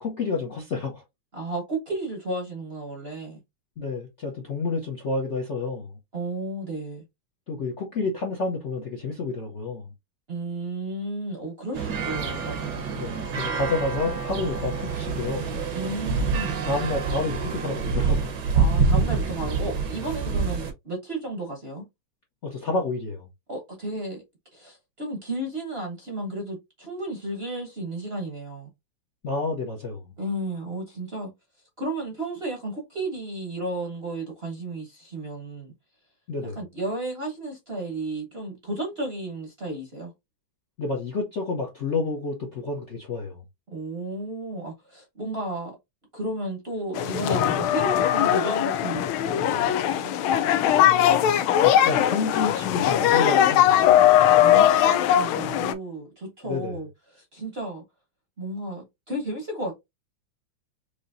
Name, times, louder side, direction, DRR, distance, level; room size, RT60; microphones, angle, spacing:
voice 1, 0.0-1.0 3.8-6.0 7.5-9.9 13.0-15.5 16.6-18.3 22.4-23.3 29.2-30.0 36.3-36.6 40.8-43.4 50.8-54.0 56.4-56.8, left 3 dB, 50° left, 0.8 m, -29 dB
voice 2, 1.3-3.4 6.1-7.0 10.3-13.4 15.7-16.7 18.5-21.8 23.5-24.2 24.5-28.7 30.2-31.3 31.8-35.7 36.4-40.1 43.7-45.8 46.1-50.1 54.3-57.8 58.4-59.7, right 2 dB, 40° right, 1.0 m, -33 dB
sound 1, 11.7-20.7, right 5 dB, 65° right, 1.4 m, -26 dB
sound 2, 47.0-55.7, left 11 dB, 80° left, 1.4 m, -20 dB
5.0 x 2.8 x 2.6 m
omnidirectional pair, 2.3 m